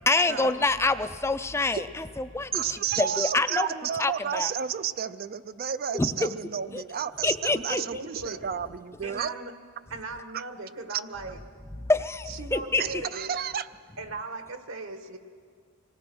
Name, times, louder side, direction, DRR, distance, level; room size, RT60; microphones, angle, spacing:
voice 1, 0.1-3.7 4.0-4.5 5.9-6.1 6.7-6.8 7.2-7.8 11.9-12.8, left 3 dB, 10° left, 11 dB, 0.5 m, -26 dB
voice 2, 2.5-9.4 10.3-10.4 10.9-11.0 12.8-13.7, right 8 dB, 45° right, 13 dB, 0.4 m, -31 dB
voice 3, 7.7-8.4 9.0-9.5 9.9-11.4 12.3-13.3 14.0-15.2, right 3 dB, 65° right, 7 dB, 1.4 m, -38 dB
25.0 x 18.5 x 6.2 m, 2.1 s
head